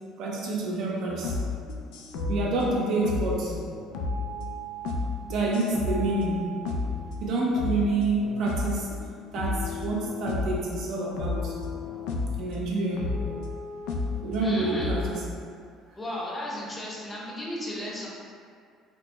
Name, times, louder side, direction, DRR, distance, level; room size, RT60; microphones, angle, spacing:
voice 1, 0.2-1.4 2.3-3.5 5.2-6.4 7.2-8.9 9.3-11.6 12.4-13.0 14.2-15.2, right 2 dB, 60° right, -3 dB, 0.7 m, -28 dB
sound 1, 1.1-7.2 7.6-9.0 9.4-10.6 11.2-12.4 13.0-15.1, left 3 dB, 85° left, 0.4 m, -32 dB
voice 2, 14.4-14.9 16.0-18.1, left 1 dB, 15° left, -5 dB, 0.6 m, -34 dB
4.2 x 2.1 x 3.3 m, 2.1 s
cardioid pair, 135°, 0 cm